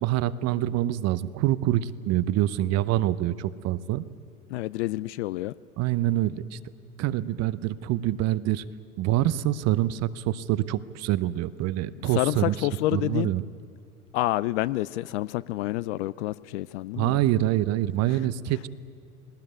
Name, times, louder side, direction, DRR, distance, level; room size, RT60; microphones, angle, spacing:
voice 1, 0.0-4.0 5.8-6.6 7.0-8.6 9.0-13.4 17.0-18.7, right 14 dB, 35° right, 16 dB, 0.7 m, -26 dB
voice 2, 4.5-5.5 12.1-13.3 14.1-17.2 18.1-18.2, left 17 dB, 50° left, 19 dB, 0.5 m, -28 dB
21.0 x 19.0 x 9.2 m, 2.3 s
figure-of-eight pair, 85°, 46 cm